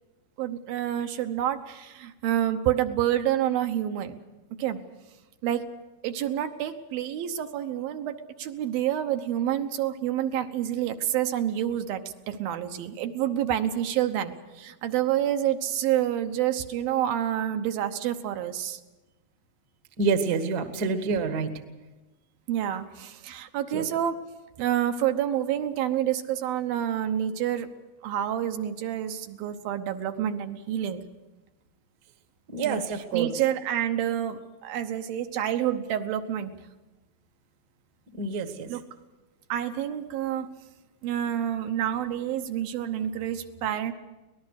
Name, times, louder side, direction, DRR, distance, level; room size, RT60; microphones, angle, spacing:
voice 1, 0.4-4.2 4.6-4.8 5.4-5.6 6.0-18.8 22.5-24.2 24.6-27.7 28.0-31.0 32.6-32.8 33.1-36.5 38.7-38.8 39.5-40.5 41.0-43.9, right 11 dB, 80° right, 7 dB, 2.8 m, -28 dB
voice 2, 20.0-21.5 23.7-23.9 32.5-33.3 38.2-38.7, right 5 dB, 45° right, 7 dB, 1.2 m, -27 dB
24.5 x 19.0 x 6.4 m, 1.1 s
omnidirectional pair, 4.2 m